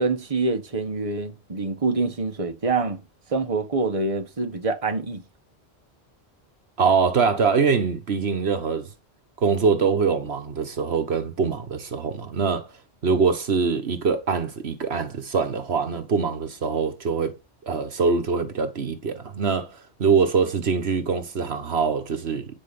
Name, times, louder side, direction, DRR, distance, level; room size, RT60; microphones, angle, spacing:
voice 1, 0.0-3.0 3.3-5.2, right 3 dB, 30° right, 1.4 m, -26 dB
voice 2, 6.8-8.9 9.4-12.7 13.0-17.4 17.6-19.7 20.0-22.5, right 5 dB, 70° right, 1.5 m, -23 dB
9.7 x 4.9 x 6.9 m
omnidirectional pair, 1.1 m